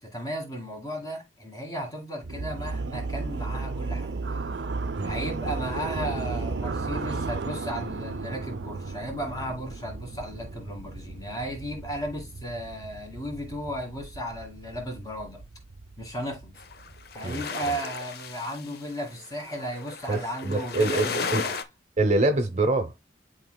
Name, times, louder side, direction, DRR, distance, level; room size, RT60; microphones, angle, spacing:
voice 1, 0.0-4.5 5.0-15.4 16.0-16.5 17.1-21.6, equal, 20° left, 2.2 m, -35 dB
sound 1, 2.2-17.1, right 3 dB, 75° right, 0.6 m, -34 dB
sound 2, 16.6-21.6, left 5 dB, 55° left, 0.7 m, -34 dB
voice 2, 20.1-21.4 22.0-23.1, right 2 dB, 40° right, 0.8 m, -25 dB
11.0 x 3.9 x 2.3 m
head